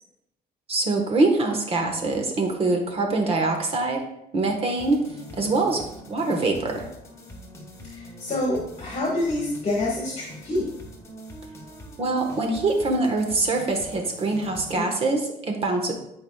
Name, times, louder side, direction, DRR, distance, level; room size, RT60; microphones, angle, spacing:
voice 1, 0.7-4.0 4.3-5.0 5.3-5.8 6.1-6.9 12.0-15.9, right 2 dB, 35° right, 3 dB, 1.3 m, -24 dB
sound 1, 4.8-14.7, equal, 15° left, 1.4 m, -43 dB
voice 2, 7.9-10.6 14.7-14.9, left 1 dB, 40° left, -3 dB, 1.7 m, -27 dB
12.0 x 4.9 x 2.3 m, 0.79 s
cardioid pair, 135°, 16 cm